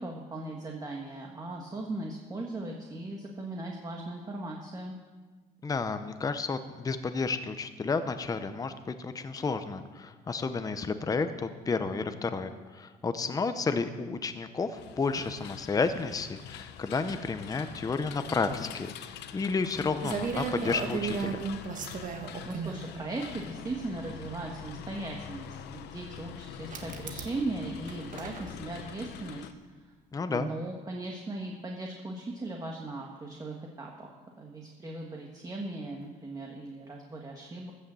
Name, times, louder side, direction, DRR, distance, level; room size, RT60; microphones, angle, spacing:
voice 1, 0.0-5.0 22.4-29.5 30.3-37.7, right 2 dB, 20° right, 0 dB, 1.5 m, -38 dB
voice 2, 5.6-21.4 30.1-30.5, left 4 dB, 20° left, 10 dB, 0.7 m, -31 dB
sound 1, 14.7-29.5, left 9 dB, 80° left, 0.8 m, -44 dB
sound 2, 19.7-19.8 20.0-22.8 23.8-23.9 26.7-27.4 27.7-28.5, right 6 dB, 50° right, 1.6 m, -34 dB
14.5 x 6.5 x 7.6 m, 1.4 s
cardioid pair, 110°, 17 cm